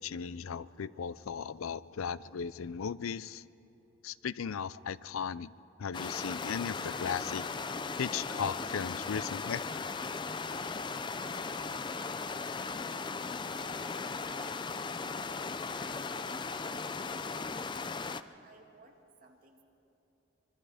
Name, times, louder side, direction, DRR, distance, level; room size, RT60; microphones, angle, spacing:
voice 1, 0.0-3.4 4.0-5.5 5.8-7.5 8.0-9.6, left 7 dB, 90° left, 18 dB, 0.5 m, -36 dB
sound 1, 5.9-18.2, left 4 dB, 20° left, 0.4 m, -37 dB
voice 2, 10.4-13.1 13.6-14.6 15.1-19.6, right 2 dB, 40° right, 2 dB, 2.2 m, -57 dB
25.0 x 23.5 x 5.0 m, 2.9 s
head